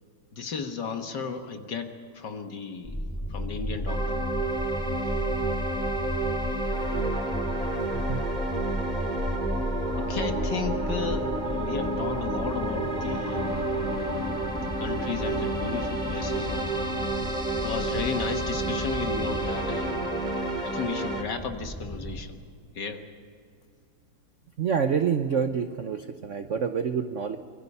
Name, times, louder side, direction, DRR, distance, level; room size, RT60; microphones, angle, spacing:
voice 1, 0.3-3.0 3.3-4.2 10.0-13.6 14.5-16.7 17.5-20.2 20.6-22.4 22.8-23.0, left 5 dB, 55° left, 6 dB, 2.0 m, -34 dB
sound 1, 2.8-22.2, equal, 5° left, 1.9 m, -34 dB
sound 2, 3.9-21.2, right 2 dB, 20° right, 2.3 m, -30 dB
voice 2, 7.9-8.2 24.6-27.4, right 7 dB, 80° right, 8 dB, 0.6 m, -27 dB
25.5 x 23.5 x 5.5 m, 2.3 s
omnidirectional pair, 2.4 m